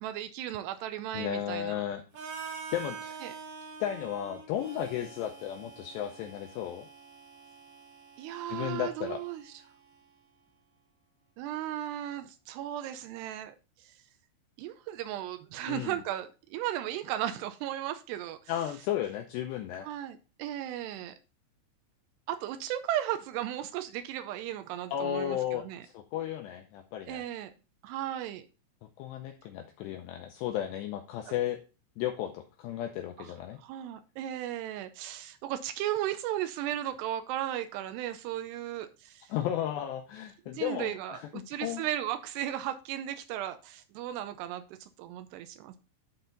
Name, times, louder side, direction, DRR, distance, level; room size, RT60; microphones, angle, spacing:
voice 1, 0.0-1.8 3.2-3.3 8.2-9.4 11.4-13.9 14.6-18.5 19.8-21.1 22.3-25.8 27.1-27.5 27.8-28.5 33.2-39.3 40.5-45.8, right 12 dB, 90° right, 9 dB, 2.4 m, -36 dB
voice 2, 1.1-2.0 2.7-3.2 3.8-6.9 8.5-9.2 15.7-16.0 18.5-19.9 24.9-27.2 29.0-31.6 32.0-33.6 39.3-41.8, left 11 dB, 80° left, 4 dB, 2.5 m, -34 dB
Harmonica, 2.1-10.0, right 5 dB, 60° right, 2.9 m, -46 dB
12.0 x 4.4 x 3.9 m, 0.33 s
omnidirectional pair, 5.5 m